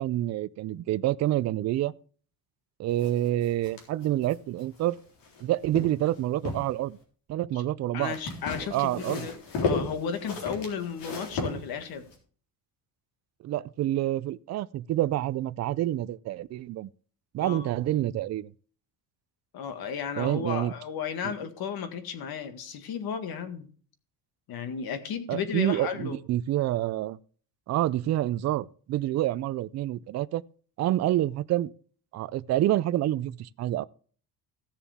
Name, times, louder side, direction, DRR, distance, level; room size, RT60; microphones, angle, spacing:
voice 1, 0.0-1.9 2.8-5.0 5.4-7.0 7.3-8.1 8.7-9.3 13.4-16.9 17.3-18.5 20.2-20.7 21.2-21.3 25.3-27.2 27.7-30.4 30.8-31.7 32.1-33.8, right 14 dB, 40° right, 0.4 m, -27 dB
sound 1, 3.0-5.4 5.7-6.7 8.1-12.2, left 3 dB, 85° left, 3.9 m, -34 dB
voice 2, 7.9-12.0 17.4-17.7 19.5-23.7 24.5-26.2, left 7 dB, 60° left, 1.9 m, -34 dB
16.0 x 7.0 x 3.6 m
cardioid pair, 150°, 41 cm